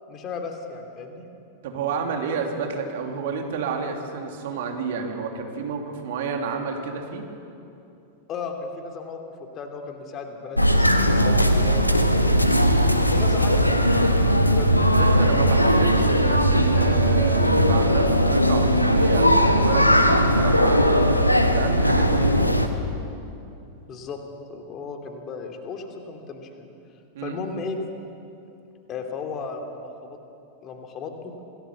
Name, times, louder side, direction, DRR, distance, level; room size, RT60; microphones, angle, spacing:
voice 1, 0.1-1.2 8.3-9.2 9.6-11.9 13.2-13.6 14.5-14.9 23.9-24.2 24.5-26.7 27.2-27.8 28.9-30.2 30.6-31.3, left 5 dB, 30° left, 4 dB, 2.9 m, -35 dB
voice 2, 1.6-7.2 13.1-13.4 14.8-20.9 21.5-22.5 27.1-27.4, right 5 dB, 55° right, 3 dB, 2.9 m, -30 dB
sound 1, 10.6-22.7, equal, 85° left, 1.4 m, -19 dB
27.0 x 18.5 x 7.2 m, 2.7 s
figure-of-eight pair, 90°, 0 cm